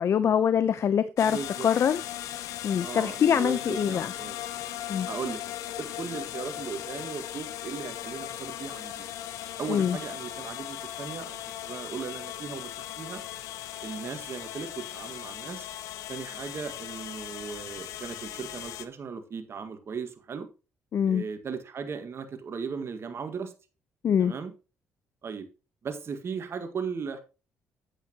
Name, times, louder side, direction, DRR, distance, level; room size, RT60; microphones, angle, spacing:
voice 1, 0.0-2.0 2.6-4.1 4.9-5.1 9.7-10.0 20.9-21.2 24.0-24.3, left 8 dB, 55° left, 0.7 m, -24 dB
sound 1, 1.2-18.8, left 12 dB, 85° left, 0.9 m, -38 dB
voice 2, 1.2-1.7 2.8-4.4 5.1-9.1 9.6-13.2 13.8-15.7 16.1-20.5 21.1-23.5 24.2-24.5 25.2-25.5 25.8-27.2, right 6 dB, 50° right, 1.7 m, -37 dB
10.0 x 8.4 x 2.9 m
supercardioid pair, 70°, 5 cm